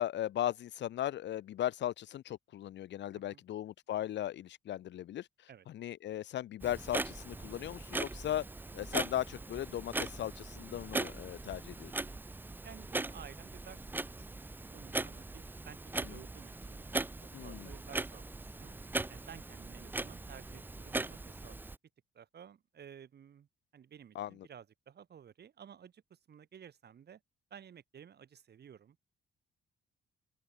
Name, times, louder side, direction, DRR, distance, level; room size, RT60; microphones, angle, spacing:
voice 1, 0.0-5.3 5.7-8.4 8.7-11.9 16.1-16.2 17.3-17.7 24.1-24.5, left 12 dB, 65° left, 0.7 m, -37 dB
Clock, 6.6-21.8, right 2 dB, 10° right, 0.4 m, -40 dB
voice 2, 12.6-17.0 17.4-18.3 18.6-18.7 19.1-21.6 22.1-27.2 27.5-29.0, right 8 dB, 55° right, 4.5 m, -54 dB
cardioid pair, 90°, 20 cm